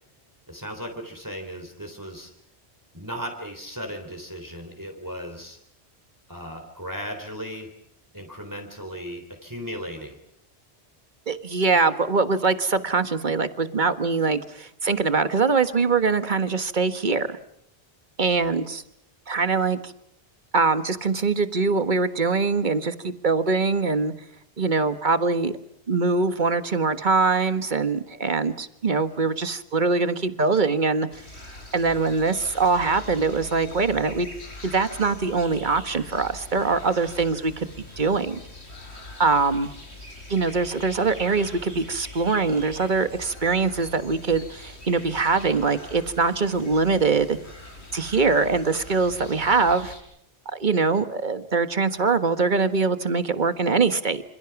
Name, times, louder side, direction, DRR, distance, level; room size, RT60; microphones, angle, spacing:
voice 1, 0.5-2.3 2.9-5.6 6.3-7.7 8.1-10.2 18.4-18.5, equal, 15° right, 4 dB, 3.7 m, -36 dB
voice 2, 11.3-17.3 18.2-18.8 19.3-19.9 20.5-24.1 24.6-25.5 25.9-31.1 31.7-34.3 34.6-37.7 38.0-38.4 39.2-39.7 40.3-47.4 47.9-49.9 50.5-54.2, right 4 dB, 45° right, 10 dB, 1.6 m, -23 dB
sound 1, 31.1-50.0, left 2 dB, 75° left, 6.0 m, -43 dB
27.5 x 27.0 x 6.0 m, 0.76 s
omnidirectional pair, 1.1 m